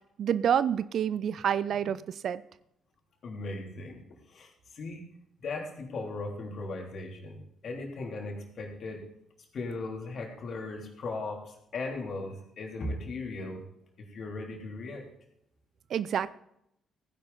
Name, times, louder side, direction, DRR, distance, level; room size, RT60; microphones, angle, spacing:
voice 1, 0.2-2.0 2.2-2.4 15.9-16.3, right 8 dB, 60° right, 17 dB, 0.5 m, -27 dB
voice 2, 3.2-4.0 4.3-5.1 5.4-7.4 7.6-9.0 9.5-13.6 14.0-15.0, left 3 dB, 55° left, 1 dB, 3.3 m, -37 dB
15.5 x 10.0 x 4.0 m, 0.77 s
hypercardioid pair, 45°, 0 cm